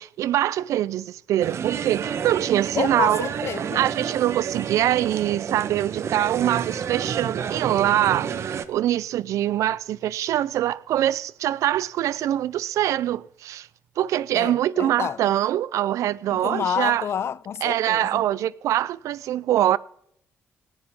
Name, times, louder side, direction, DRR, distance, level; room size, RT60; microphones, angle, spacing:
voice 1, 0.0-3.3 3.7-13.7 14.0-17.0 17.6-19.8, right 12 dB, 80° right, 0.6 m, -24 dB
sound 1, 1.4-8.7, right 7 dB, 60° right, 1.2 m, -30 dB
voice 2, 2.8-3.8 14.3-15.2 16.3-18.2, left 8 dB, 55° left, 0.5 m, -29 dB
18.0 x 14.0 x 3.7 m
cardioid pair, 80°, 5 cm